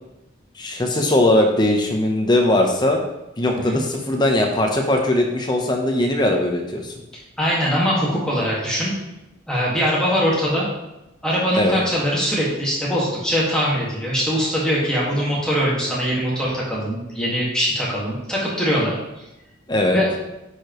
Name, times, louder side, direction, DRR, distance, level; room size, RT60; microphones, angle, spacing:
voice 1, 0.6-3.0 3.4-6.9 11.6-11.8 19.7-20.0, left 1 dB, 20° left, 2 dB, 0.9 m, -19 dB
voice 2, 3.5-3.8 7.4-8.9 9.5-10.7 11.2-19.0 19.9-20.1, equal, 5° left, -6 dB, 1.8 m, -22 dB
9.8 x 4.9 x 3.1 m, 0.94 s
head